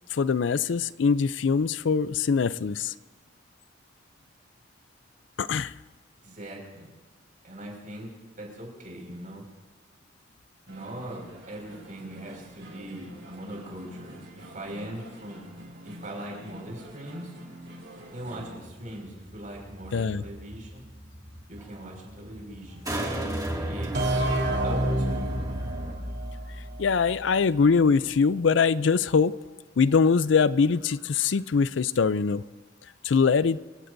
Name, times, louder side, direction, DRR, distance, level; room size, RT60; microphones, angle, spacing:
voice 1, 0.1-2.9 5.4-5.7 19.9-20.2 26.8-29.3 29.8-32.4 33.0-33.6, left 5 dB, 75° left, 17 dB, 0.5 m, -23 dB
voice 2, 6.2-6.9 7.4-9.4 10.7-15.4 15.8-17.3 18.1-20.8 21.5-22.9 23.6-24.3 24.6-25.4, right 1 dB, 45° right, 0 dB, 5.4 m, -40 dB
sound 1, 10.7-18.6, equal, 85° right, 5.1 m, -46 dB
sound 2, 18.5-26.0, right 1 dB, 20° right, 2.2 m, -36 dB
sound 3, 23.9-27.5, right 1 dB, 60° right, 2.9 m, -29 dB
27.5 x 16.5 x 2.7 m, 1.3 s
head